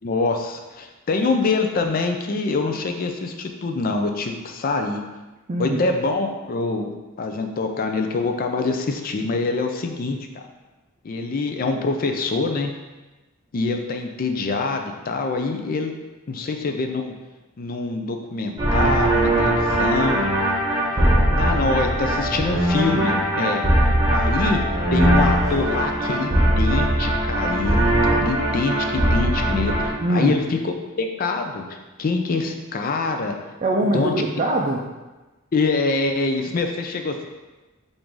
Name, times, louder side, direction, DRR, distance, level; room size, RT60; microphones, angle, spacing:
voice 1, 0.0-5.0 5.6-10.5 11.0-12.7 13.5-15.9 16.3-17.1 17.6-20.2 21.4-23.7 24.1-24.6 24.9-33.4 33.9-34.1 35.5-37.3, left 3 dB, 45° left, 5 dB, 0.4 m, -25 dB
voice 2, 5.5-5.8 30.0-30.4 33.6-34.8, right 1 dB, 35° right, -2 dB, 0.4 m, -22 dB
sound 1, 18.6-29.9, right 1 dB, 15° right, 0.8 m, -20 dB
3.7 x 2.6 x 4.5 m, 1.1 s
head